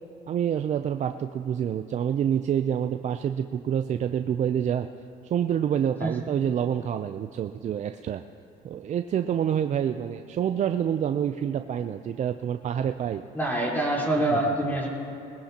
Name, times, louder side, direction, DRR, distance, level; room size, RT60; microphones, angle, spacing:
voice 1, 0.3-4.9 5.2-8.2 8.6-13.2 14.3-14.4, right 9 dB, 45° right, 7 dB, 0.5 m, -27 dB
voice 2, 13.3-14.9, right 1 dB, 10° left, -4 dB, 4.0 m, -25 dB
20.5 x 20.0 x 2.9 m, 2.7 s
cardioid pair, 110°, 17 cm